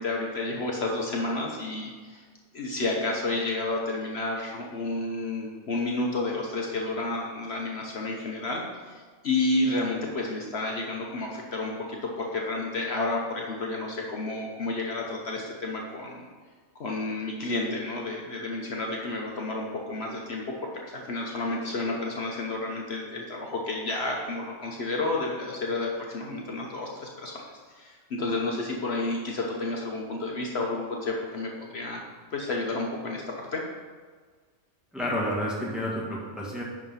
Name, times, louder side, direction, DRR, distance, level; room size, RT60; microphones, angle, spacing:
voice 1, 0.0-2.2 2.5-16.3 16.8-20.5 20.9-27.4 27.7-32.1 32.3-33.6, left 2 dB, 60° left, -1 dB, 1.2 m, -31 dB
voice 2, 34.9-36.6, equal, ahead, -5 dB, 1.6 m, -30 dB
10.5 x 3.6 x 5.6 m, 1.6 s
omnidirectional pair, 1.3 m